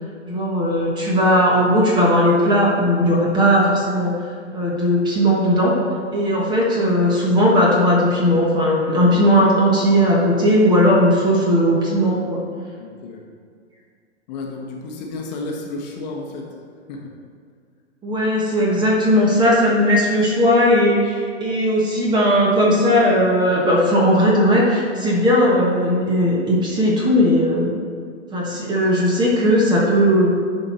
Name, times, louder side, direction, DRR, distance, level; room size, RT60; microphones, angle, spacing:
voice 1, 0.3-4.1 4.5-5.7 6.1-12.4 18.0-27.7 28.3-30.3, equal, 10° right, -3 dB, 1.0 m, -17 dB
voice 2, 12.8-13.2 14.3-16.5 16.9-17.1, left 2 dB, 35° left, 1 dB, 1.1 m, -32 dB
11.5 x 4.4 x 4.2 m, 2.1 s
hypercardioid pair, 140°, 36 cm